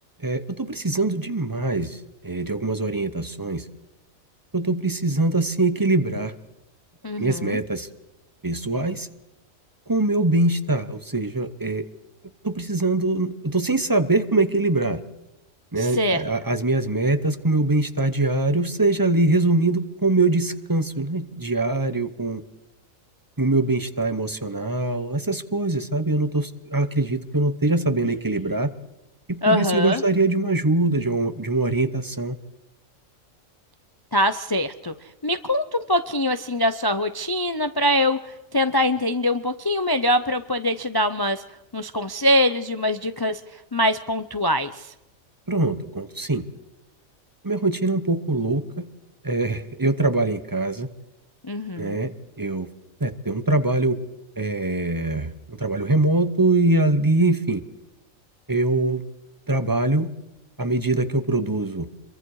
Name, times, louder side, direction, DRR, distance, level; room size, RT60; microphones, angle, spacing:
voice 1, 0.2-2.0 2.2-3.6 4.5-6.3 7.2-7.9 8.4-9.1 9.9-11.8 12.4-15.0 15.7-22.4 23.4-28.7 29.3-32.3 45.5-46.4 47.4-48.6 49.2-50.9 51.8-52.7 53.0-54.0 54.4-57.6 58.5-59.0 59.5-60.1 60.6-61.9, right 2 dB, 20° right, 11 dB, 0.8 m, -23 dB
voice 2, 7.0-7.6 15.8-16.2 29.4-30.0 34.1-34.9 35.2-38.2 38.5-41.4 41.7-43.4 43.7-44.9 51.4-52.0, left 1 dB, 25° left, 10 dB, 0.5 m, -23 dB
26.5 x 23.0 x 4.8 m, 0.98 s
omnidirectional pair, 1.4 m